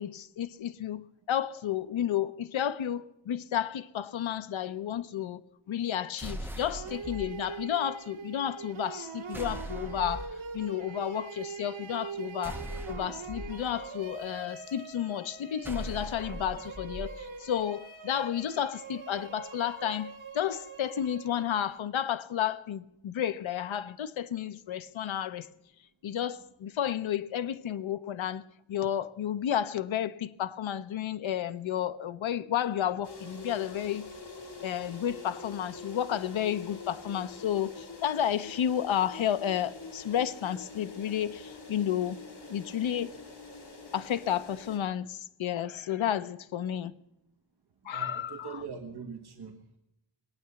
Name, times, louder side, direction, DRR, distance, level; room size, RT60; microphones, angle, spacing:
voice 1, 0.0-5.4 5.7-25.5 26.0-28.4 28.7-34.1 34.6-42.2 42.5-43.1 43.9-46.9 47.8-48.6, left 10 dB, 75° left, 0.8 m, -32 dB
sound 1, 6.2-7.3 9.3-10.3 12.4-13.5 15.6-17.1, equal, 5° right, 1.1 m, -40 dB
sound 2, 6.7-21.8, right 5 dB, 75° right, 2.3 m, -43 dB
sound 3, 33.0-44.8, left 3 dB, 55° left, 3.2 m, -45 dB
voice 2, 47.8-49.8, right 5 dB, 55° right, 1.6 m, -42 dB
21.5 x 9.0 x 6.9 m
wide cardioid pair, 150°, 47 cm